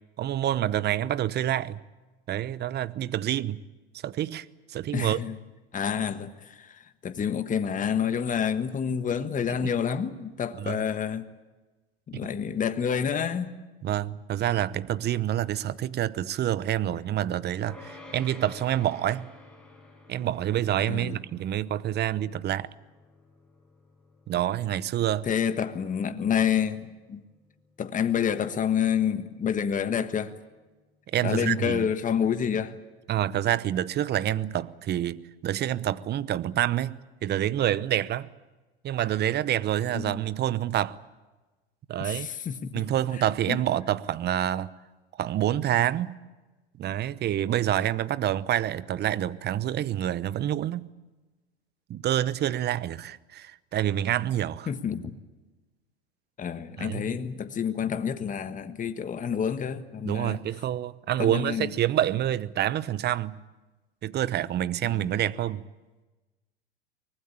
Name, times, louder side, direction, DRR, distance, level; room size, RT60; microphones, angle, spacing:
voice 1, 0.2-1.8 2.3-3.6 4.0-5.2 9.6-9.7 10.5-10.8 13.8-19.3 20.1-22.7 24.3-25.3 31.1-31.9 33.1-38.3 38.8-41.0 41.9-42.3 42.7-44.7 45.2-46.2 46.8-50.9 51.9-54.7 56.8-57.2 60.0-63.4 64.0-65.6, right 12 dB, 30° right, 0.8 m, -27 dB
voice 2, 4.9-5.4 5.7-11.3 12.1-13.5 20.9-21.2 25.3-27.2 27.8-30.3 31.2-32.7 39.9-40.2 42.0-42.8 43.5-43.6 54.7-55.1 56.4-60.4 61.2-61.7 64.8-65.1, left 8 dB, 25° left, 1.4 m, -28 dB
sound 1, 17.6-28.9, left 2 dB, 5° left, 5.8 m, -52 dB
24.5 x 19.5 x 8.8 m
hypercardioid pair, 85°, 32 cm